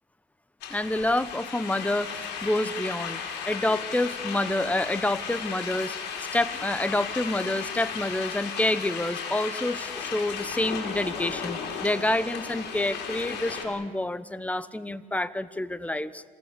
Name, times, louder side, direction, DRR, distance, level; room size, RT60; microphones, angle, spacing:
sound 1, 0.6-13.7, left 6 dB, 80° left, 5.7 m, -35 dB
voice 1, 0.7-16.2, left 1 dB, 10° left, 15 dB, 1.0 m, -28 dB
26.5 x 19.5 x 8.4 m, 1.5 s
cardioid pair, 110°, 17 cm